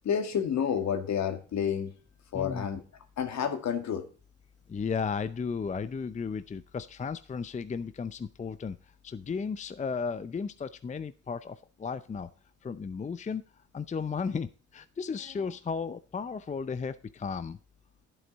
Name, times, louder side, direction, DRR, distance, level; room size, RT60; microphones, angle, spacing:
voice 1, 0.0-1.9 2.3-2.8 3.2-4.0, left 8 dB, 65° left, 2.0 m, -29 dB
voice 2, 2.3-2.7 4.7-12.3 12.6-17.6, left 5 dB, 25° left, 0.6 m, -35 dB
11.0 x 8.1 x 4.0 m
cardioid pair, 90°, 30 cm